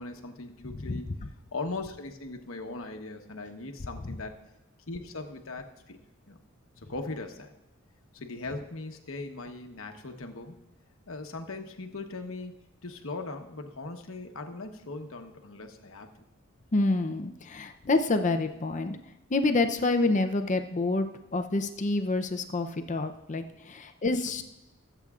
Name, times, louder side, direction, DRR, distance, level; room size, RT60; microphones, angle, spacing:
voice 1, 0.0-4.3 4.9-6.0 6.3-6.4 6.9-7.5 8.1-10.6 11.1-12.5 12.8-16.1, left 3 dB, 75° left, 5 dB, 1.1 m, -39 dB
voice 2, 16.7-19.0 19.3-21.1 21.3-24.4, left 2 dB, 35° left, 7 dB, 0.6 m, -27 dB
21.5 x 8.0 x 2.4 m, 0.92 s
head